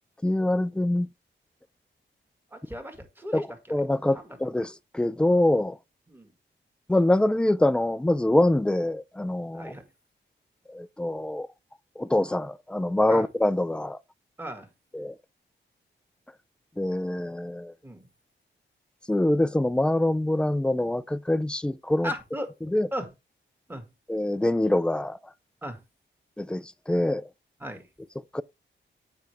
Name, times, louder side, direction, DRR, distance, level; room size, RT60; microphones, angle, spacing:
voice 1, 0.2-1.1 3.3-5.8 6.9-9.7 10.7-11.5 12.0-14.0 14.9-15.2 16.8-17.7 19.1-22.1 22.6-22.9 24.1-25.2 26.4-27.3 28.3-28.4, left 1 dB, 5° left, 0.3 m, -25 dB
voice 2, 2.5-3.4 6.1-6.3 9.5-9.8 13.1-13.2 14.4-14.7 17.8-18.0 22.0-22.5 22.9-23.1 23.7-23.8 25.6-25.8 27.6-27.8, equal, 10° right, 1.8 m, -35 dB
8.3 x 5.3 x 3.3 m
wide cardioid pair, 100°, 20 cm